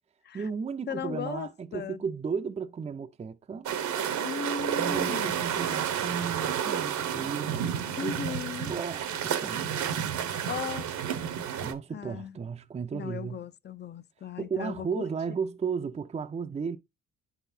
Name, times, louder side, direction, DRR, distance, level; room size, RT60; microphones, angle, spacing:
voice 1, 0.3-3.7 4.8-8.1 8.7-9.7 11.6-13.4 14.4-16.8, right 6 dB, 20° right, 0.4 m, -34 dB
voice 2, 0.9-2.0 4.2-5.3 8.0-8.7 10.4-10.9 11.9-12.4 12.9-15.1, left 8 dB, 35° left, 0.5 m, -37 dB
sound 1, 3.7-11.7, right 9 dB, 75° right, 0.9 m, -31 dB
9.7 x 4.0 x 2.6 m
cardioid pair, 90°, 30 cm